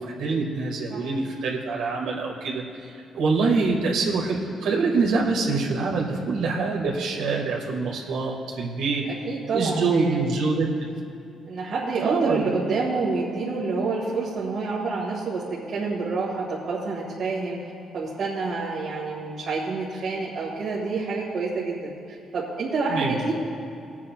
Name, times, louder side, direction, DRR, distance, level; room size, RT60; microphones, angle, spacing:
voice 1, 0.0-9.0 9.5-10.9 12.0-12.5 22.9-23.2, right 4 dB, 90° right, -3 dB, 2.0 m, -25 dB
voice 2, 9.3-10.2 11.5-17.6 17.9-23.3, right 4 dB, 60° right, -7 dB, 2.1 m, -28 dB
23.0 x 8.3 x 2.4 m, 2.7 s
cardioid pair, 90°, 0 cm